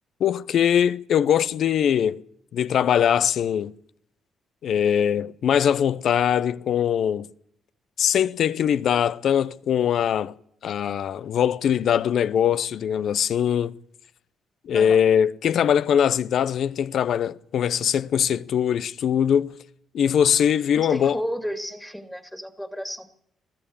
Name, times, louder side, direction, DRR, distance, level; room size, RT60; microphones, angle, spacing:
voice 1, 0.2-2.2 2.5-3.7 4.6-7.3 8.0-10.4 10.6-13.8 14.6-19.6 19.9-21.2, left 9 dB, 65° left, 0.7 m, -22 dB
voice 2, 20.8-23.1, equal, 5° left, 2.1 m, -32 dB
21.5 x 14.0 x 8.6 m
cardioid pair, 90°, 0 cm